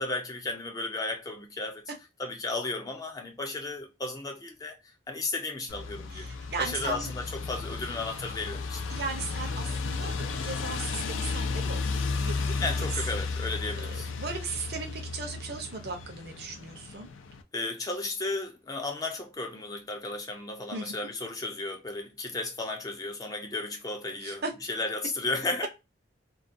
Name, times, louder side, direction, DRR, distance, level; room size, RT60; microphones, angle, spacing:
voice 1, 0.0-1.8 2.2-4.8 5.1-6.3 6.6-8.8 12.6-14.1 17.5-24.4 24.7-25.7, left 2 dB, 20° left, 0.3 m, -34 dB
sound 1, 5.7-17.4, left 4 dB, 90° left, 0.4 m, -33 dB
voice 2, 6.1-7.1 8.9-11.8 12.2-12.9 13.8-17.1 20.7-20.9 24.2-24.5, right 4 dB, 55° right, 0.6 m, -37 dB
2.3 x 2.2 x 2.5 m
head